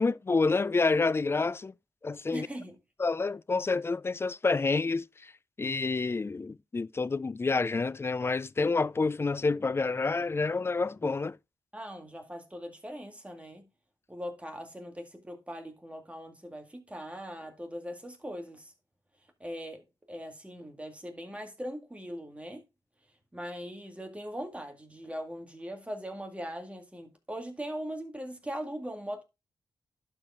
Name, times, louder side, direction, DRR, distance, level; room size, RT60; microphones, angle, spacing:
voice 1, 0.0-1.7 2.0-2.5 3.0-5.3 5.6-11.4, left 3 dB, 25° left, 0.3 m, -28 dB
voice 2, 2.3-2.8 11.7-13.7 14.1-18.7 19.4-19.8 20.1-22.6 23.3-29.2, equal, 15° right, 2.0 m, -40 dB
11.5 x 4.5 x 3.7 m
cardioid pair, 70°, 9 cm